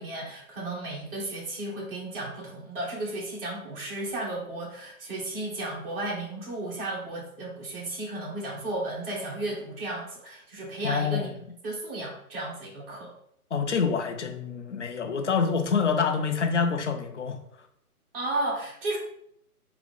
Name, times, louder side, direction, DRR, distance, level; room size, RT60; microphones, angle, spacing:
voice 1, 0.0-11.3 11.6-13.1 18.1-19.0, right 2 dB, 35° right, -5 dB, 1.6 m, -34 dB
voice 2, 10.8-11.3 13.5-17.4, left 5 dB, 50° left, 6 dB, 0.6 m, -26 dB
3.8 x 3.0 x 3.5 m, 0.71 s
hypercardioid pair, 160°, 46 cm